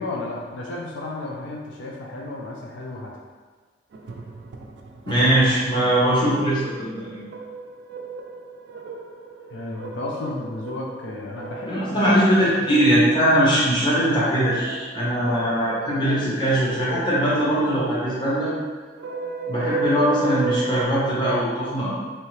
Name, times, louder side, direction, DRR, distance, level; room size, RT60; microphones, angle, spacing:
voice 1, 0.0-3.1 9.5-12.0 12.4-12.8, left 2 dB, 75° left, -3 dB, 0.5 m, -33 dB
sound 1, 3.9-20.9, right 4 dB, 65° right, 0.3 m, -35 dB
voice 2, 5.1-7.3 11.7-18.5 19.5-21.9, equal, 25° left, -8 dB, 0.9 m, -21 dB
3.2 x 2.7 x 3.1 m, 1.4 s
head